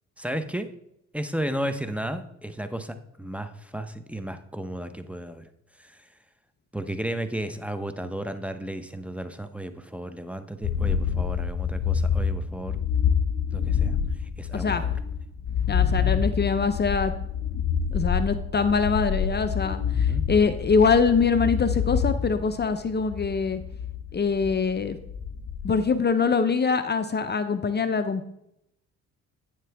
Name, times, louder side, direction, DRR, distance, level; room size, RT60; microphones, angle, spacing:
voice 1, 0.2-0.7 1.1-5.5 5.8-6.0 6.7-12.8 13.5-14.0 14.4-15.0 20.0-20.2, right 1 dB, 5° right, 9 dB, 1.0 m, -33 dB
sound 1, 10.6-25.9, left 7 dB, 70° left, 2.1 m, -27 dB
voice 2, 15.7-17.1 17.9-23.6 24.1-25.0 25.6-28.3, left 5 dB, 35° left, 10 dB, 0.7 m, -24 dB
11.5 x 9.4 x 3.5 m, 0.78 s
cardioid pair, 90°, 30 cm